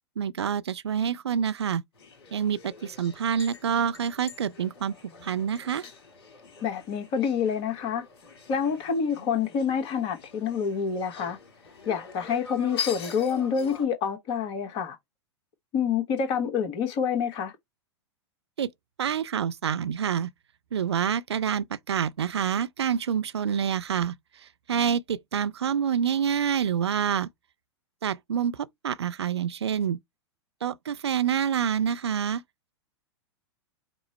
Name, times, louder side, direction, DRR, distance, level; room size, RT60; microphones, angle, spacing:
voice 1, 0.2-1.8 2.3-4.9 5.2-5.9 18.6-18.7 19.0-20.3 20.7-24.1 24.4-27.3 28.0-30.0 30.6-32.4, right 8 dB, 70° right, 0.4 m, -27 dB
sound 1, 1.9-13.9, left 6 dB, 55° left, 1.6 m, -43 dB
voice 2, 6.6-8.0 8.5-11.4 11.8-15.0 15.7-17.5, left 7 dB, 35° left, 1.2 m, -27 dB
5.2 x 2.0 x 4.3 m
figure-of-eight pair, 100°, 15 cm